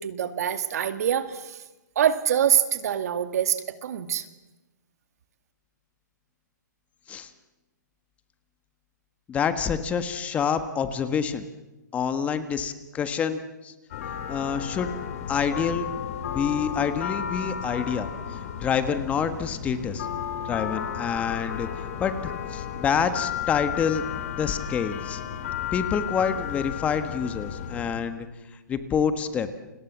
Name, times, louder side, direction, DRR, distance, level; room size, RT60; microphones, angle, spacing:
voice 1, 0.0-1.6 2.0-4.2, right 9 dB, 55° right, 11 dB, 2.3 m, -25 dB
voice 2, 9.3-11.5 11.9-13.7 14.3-14.9 15.3-15.9 16.3-20.1 20.4-24.0 24.4-25.2 25.7-28.3 28.7-29.5, left 7 dB, 15° left, 10 dB, 1.6 m, -27 dB
sound 1, 13.9-28.0, left 9 dB, 50° left, 3.9 m, -33 dB
30.0 x 26.0 x 7.4 m, 1.0 s
hypercardioid pair, 155°, 10 cm